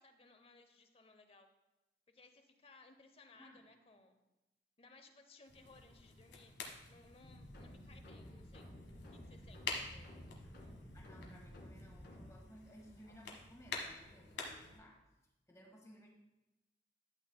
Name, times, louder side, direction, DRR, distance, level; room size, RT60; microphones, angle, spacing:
voice 1, 0.0-1.5 2.1-4.2 4.8-6.6 6.9-8.7 9.1-10.2, left 3 dB, 35° left, 7 dB, 0.8 m, -62 dB
voice 2, 3.3-3.6 10.9-15.0 15.5-16.1, equal, 20° left, 0 dB, 1.5 m, -59 dB
sound 1, 5.5-14.8, left 4 dB, 80° left, 1.5 m, -49 dB
sound 2, 7.2-12.3, equal, 65° left, 1.8 m, -53 dB
12.0 x 8.4 x 2.2 m, 0.96 s
head